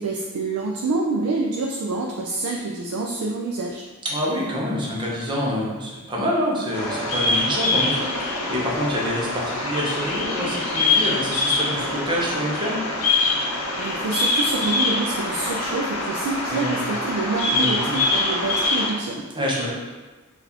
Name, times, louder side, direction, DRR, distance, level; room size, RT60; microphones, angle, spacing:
voice 1, 0.0-3.8 13.8-19.3, right 3 dB, 80° right, 0 dB, 0.4 m, -27 dB
voice 2, 4.0-12.8 16.5-16.9 17.5-18.0 19.3-19.7, equal, 20° right, -5 dB, 0.7 m, -26 dB
Bird vocalization bird call bird song, 6.7-18.9, left 2 dB, 70° left, 0.7 m, -24 dB
3.9 x 2.4 x 2.8 m, 1.3 s
head